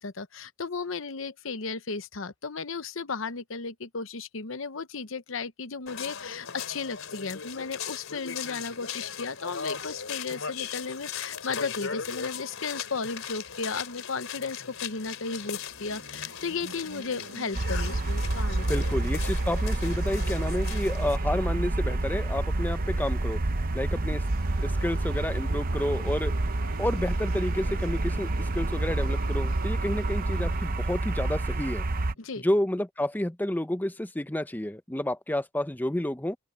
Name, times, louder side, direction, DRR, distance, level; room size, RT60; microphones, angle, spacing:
voice 1, 0.0-19.0 32.2-32.4, left 4 dB, 70° left, 0.9 m, -35 dB
sound 1, 5.9-21.2, left 7 dB, 85° left, 3.0 m, -38 dB
sound 2, 14.7-32.5, right 3 dB, 75° right, 1.2 m, -46 dB
sound 3, 17.5-32.1, right 2 dB, 45° right, 0.9 m, -28 dB
voice 2, 18.7-23.4 23.7-24.2 24.6-26.3 26.8-31.9 32.4-36.4, left 1 dB, 10° left, 0.8 m, -30 dB
open air
head